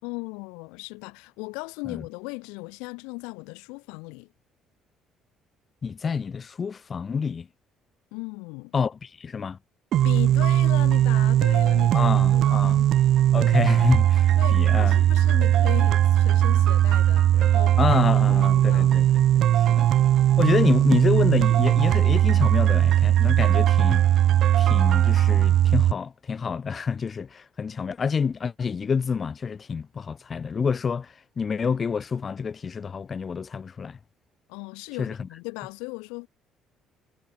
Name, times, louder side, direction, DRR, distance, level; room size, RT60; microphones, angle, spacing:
voice 1, 0.0-4.3 8.1-8.7 10.0-13.3 14.4-19.0 34.5-36.3, left 31 dB, 75° left, 6.2 m, -37 dB
voice 2, 5.8-7.5 8.7-9.6 11.9-12.8 13.3-15.0 17.8-19.9 20.4-24.1 24.6-34.0 35.0-35.2, left 6 dB, 40° left, 7.4 m, -28 dB
sound 1, 9.9-25.9, right 12 dB, 60° right, 1.0 m, -19 dB
hypercardioid pair, 55°, 0 cm